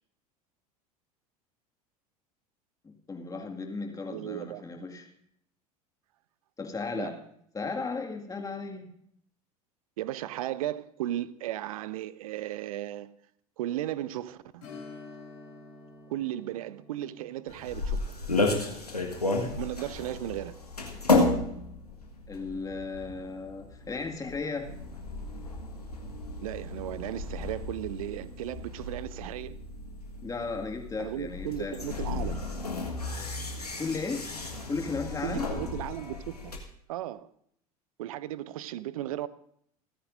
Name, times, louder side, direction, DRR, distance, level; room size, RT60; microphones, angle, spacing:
voice 1, 2.8-5.1 6.6-7.2 7.5-8.9 22.3-24.7 30.2-32.0 33.8-34.2 34.7-35.5, left 4 dB, 15° left, 2.0 m, -35 dB
voice 2, 4.1-4.6 6.9-7.2 10.0-13.1 13.6-14.7 16.1-18.0 19.5-20.6 26.4-29.6 31.0-32.4 35.2-36.6 36.9-37.3 38.0-39.3, right 13 dB, 65° right, 0.6 m, -35 dB
Strum, 14.6-23.8 24.1-24.2 26.8-26.9 27.4-27.5, left 3 dB, 75° left, 4.5 m, -52 dB
sound 1, 17.5-36.6, left 2 dB, 90° left, 1.6 m, -33 dB
27.5 x 9.9 x 2.6 m
figure-of-eight pair, 75°, 19 cm